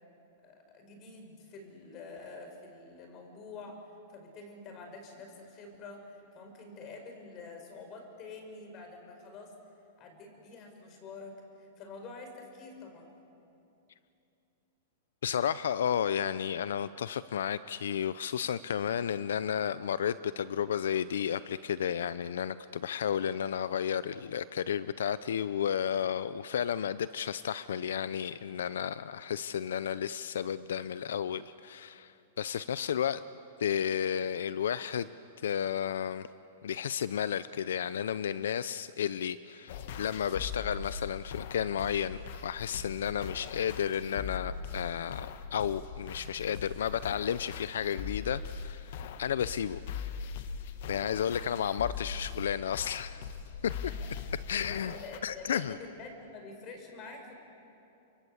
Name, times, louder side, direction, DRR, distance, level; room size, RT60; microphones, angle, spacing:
voice 1, 0.4-3.8 4.1-9.5 10.0-13.1 53.9-57.3, left 3 dB, 30° left, 4 dB, 5.7 m, -47 dB
voice 2, 15.2-33.2 33.6-35.1 35.4-36.3 36.6-48.9 49.2-49.8 50.9-53.3 53.6-53.7 54.5-54.9 55.2-55.8, left 8 dB, 85° left, 15 dB, 0.6 m, -32 dB
sound 1, 39.7-55.2, left 6 dB, 60° left, 1.3 m, -41 dB
29.5 x 24.0 x 8.1 m, 2.8 s
hypercardioid pair, 150°, 0 cm